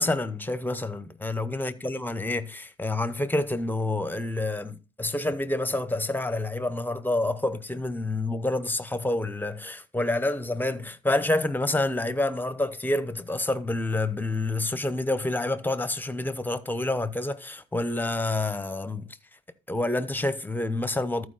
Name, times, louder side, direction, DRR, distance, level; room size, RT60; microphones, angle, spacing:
voice 1, 0.0-19.1 19.7-21.3, left 2 dB, 10° left, 0.9 m, -28 dB
13.5 x 4.8 x 4.0 m
cardioid pair, 90°, 20 cm